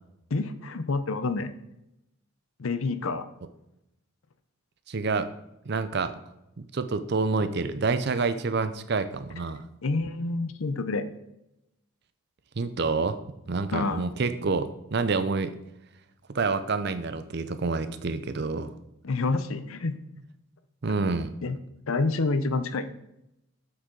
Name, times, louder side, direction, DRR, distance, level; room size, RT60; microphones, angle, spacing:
voice 1, 0.3-1.5 2.6-3.3 9.8-11.1 13.7-14.1 19.0-20.0 21.4-21.6 21.9-22.9, left 3 dB, 75° left, 12 dB, 0.6 m, -28 dB
voice 2, 4.9-5.3 5.7-6.1 6.6-9.6 12.6-13.2 13.5-15.5 16.3-18.7 20.8-21.3, right 4 dB, 50° right, 11 dB, 0.5 m, -28 dB
7.9 x 6.4 x 3.8 m, 0.85 s
head